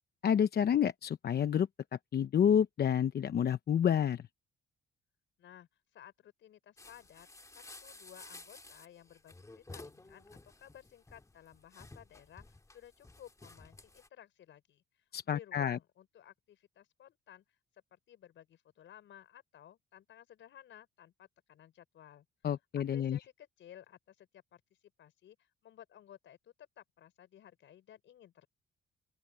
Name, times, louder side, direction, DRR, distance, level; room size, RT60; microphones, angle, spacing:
voice 1, 0.2-1.7 2.1-4.2 15.1-15.8 22.4-23.2, left 8 dB, 55° left, 1.0 m, -29 dB
voice 2, 5.4-7.3 7.5-17.6 17.9-22.3 22.8-24.6 25.0-28.5, left 11 dB, 70° left, 5.4 m, -56 dB
sound 1, 6.8-14.1, left 2 dB, 15° left, 2.4 m, -53 dB
open air
cardioid pair, 90°, 20 cm